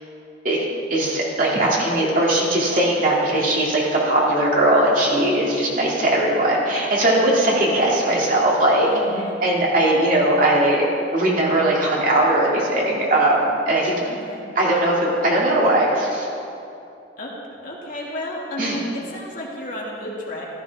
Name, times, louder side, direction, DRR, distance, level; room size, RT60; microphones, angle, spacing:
voice 1, 0.4-8.9 9.4-10.9 11.1-14.0 14.6-16.3 18.6-18.8, right 1 dB, 45° right, -4 dB, 2.5 m, -19 dB
voice 2, 7.4-8.2 8.9-9.4 14.0-14.5 17.2-17.3 17.6-20.5, left 1 dB, 45° left, -4 dB, 2.3 m, -33 dB
15.0 x 13.0 x 3.6 m, 2.7 s
head